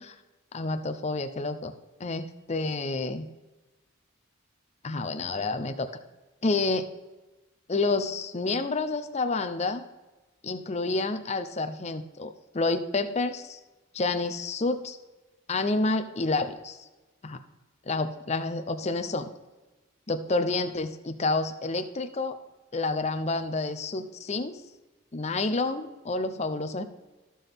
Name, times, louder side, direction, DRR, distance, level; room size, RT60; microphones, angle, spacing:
voice 1, 0.5-1.7 2.0-3.3 4.8-5.9 6.4-6.9 7.7-9.8 10.4-13.6 13.9-15.0 15.5-16.8 17.2-17.4 17.8-19.3 20.1-22.4 22.7-24.6 25.1-26.8, left 3 dB, 30° left, 8 dB, 0.6 m, -29 dB
14.0 x 5.8 x 3.6 m, 1.2 s
head